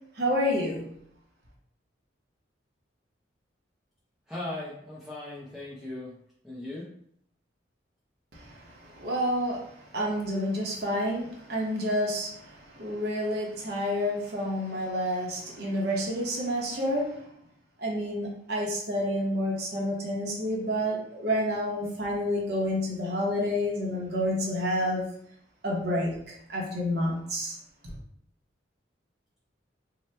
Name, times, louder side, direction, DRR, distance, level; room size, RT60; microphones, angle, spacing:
voice 1, 0.2-0.9 9.0-9.6 9.9-17.1 17.8-25.0 25.6-26.1 26.5-27.6, equal, 55° right, -3 dB, 0.8 m, -29 dB
voice 2, 4.3-6.1 6.4-6.9, left 2 dB, ahead, -7 dB, 0.4 m, -38 dB
2.8 x 2.1 x 3.2 m, 0.69 s
head